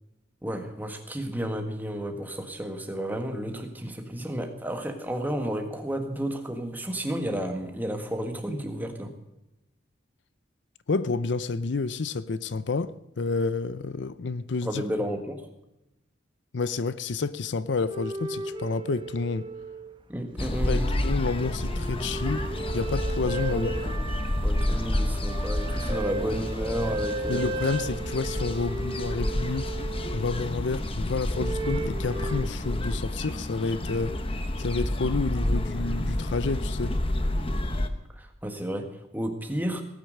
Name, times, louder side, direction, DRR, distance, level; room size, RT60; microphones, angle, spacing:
voice 1, 0.4-9.1 14.6-15.4 20.1-20.9 23.5-24.0 24.4-27.5 38.1-39.8, equal, 10° right, 1.7 m, -32 dB
voice 2, 10.9-14.8 16.5-19.5 20.6-22.5 22.7-23.7 27.3-29.7 30.1-34.2 34.6-37.0, left 4 dB, 65° left, 0.6 m, -29 dB
sound 1, 17.8-20.2 20.5-30.7 31.3-32.5, right 2 dB, 25° right, 1.0 m, -36 dB
sound 2, 20.4-37.9, left 1 dB, 30° left, 1.1 m, -29 dB
18.5 x 9.6 x 6.6 m
head